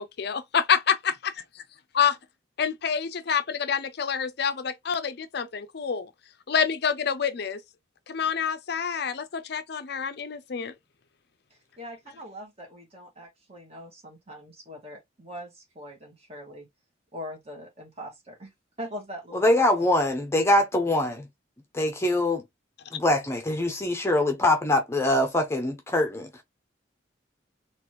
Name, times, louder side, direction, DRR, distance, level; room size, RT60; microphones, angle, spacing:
voice 1, 0.0-1.2 1.9-2.2 2.6-6.1 6.5-7.6 8.1-10.7, left 7 dB, 55° left, 0.5 m, -27 dB
voice 2, 11.8-16.7 17.1-18.5 18.8-19.9, equal, 30° right, 1.9 m, -42 dB
voice 3, 19.3-21.2 21.7-22.4 22.9-26.3, left 1 dB, 15° left, 0.8 m, -23 dB
4.2 x 3.1 x 3.0 m
head